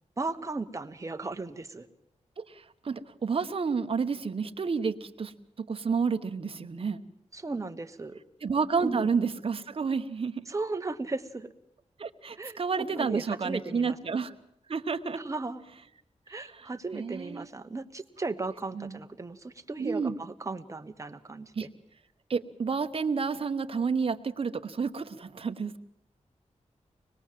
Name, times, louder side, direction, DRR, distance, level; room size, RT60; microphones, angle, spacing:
voice 1, 0.2-1.9 7.3-8.2 8.8-9.1 10.5-11.5 12.4-14.0 15.2-15.6 16.3-21.7, right 3 dB, 25° right, 7 dB, 1.1 m, -36 dB
voice 2, 2.4-5.3 5.6-7.0 8.4-10.4 12.0-14.3 14.7-15.2 16.5-17.5 18.7-19.0 19.8-20.2 21.6-21.7 22.3-25.7, right 5 dB, 50° right, 8 dB, 1.1 m, -30 dB
25.0 x 20.5 x 7.5 m, 0.76 s
wide cardioid pair, 155°, 13 cm